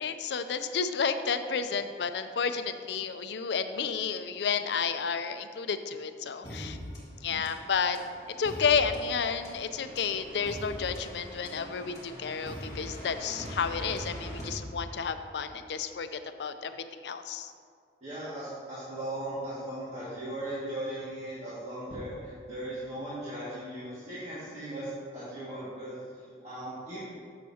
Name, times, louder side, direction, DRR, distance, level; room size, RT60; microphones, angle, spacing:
voice 1, 0.0-6.8 7.2-8.0 8.4-16.1 16.4-17.5, left 6 dB, 80° left, 9 dB, 0.4 m, -31 dB
sound 1, 6.4-15.3, equal, 20° left, 1.8 m, -42 dB
voice 2, 18.0-27.0, right 1 dB, 40° right, -11 dB, 1.9 m, -38 dB
12.5 x 6.7 x 2.8 m, 2.1 s
head